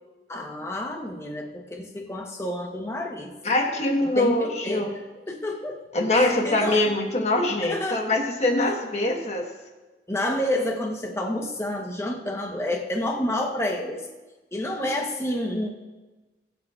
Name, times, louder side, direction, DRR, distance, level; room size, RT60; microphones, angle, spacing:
voice 1, 0.3-3.3 4.0-4.9 5.3-5.8 6.1-7.0 7.6-8.1 10.1-14.1 14.5-15.7, left 1 dB, 15° left, 2 dB, 1.0 m, -29 dB
voice 2, 3.4-4.9 5.9-9.5, left 2 dB, 40° left, 2 dB, 1.4 m, -23 dB
22.0 x 7.7 x 2.5 m, 1.2 s
head